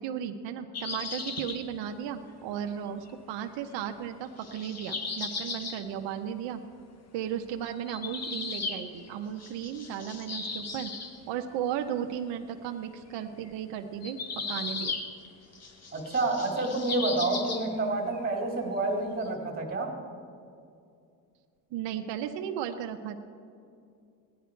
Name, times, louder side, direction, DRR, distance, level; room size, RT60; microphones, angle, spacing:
voice 1, 0.0-6.6 7.1-10.9 11.3-14.9 21.7-23.2, right 9 dB, 70° right, 5 dB, 0.9 m, -35 dB
sound 1, 0.7-1.6 3.1-3.2 4.2-5.8 7.7-9.1 9.4-11.2 13.5-13.6 14.0-15.3 15.5-17.9 18.1-18.2 19.2-19.3, left 4 dB, 35° left, 1.4 m, -36 dB
voice 2, 15.9-19.9, right 2 dB, 20° right, 0 dB, 2.5 m, -29 dB
17.0 x 10.5 x 4.5 m, 2.4 s
cardioid pair, 100°, 45 cm